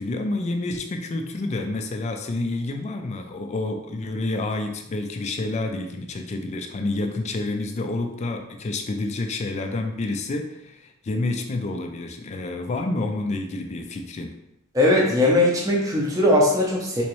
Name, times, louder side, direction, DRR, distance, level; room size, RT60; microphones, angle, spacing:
voice 1, 0.0-14.3, left 2 dB, 30° left, 5 dB, 0.3 m, -29 dB
voice 2, 14.7-17.0, left 1 dB, 15° right, -3 dB, 0.6 m, -19 dB
3.4 x 3.0 x 3.0 m, 0.86 s
head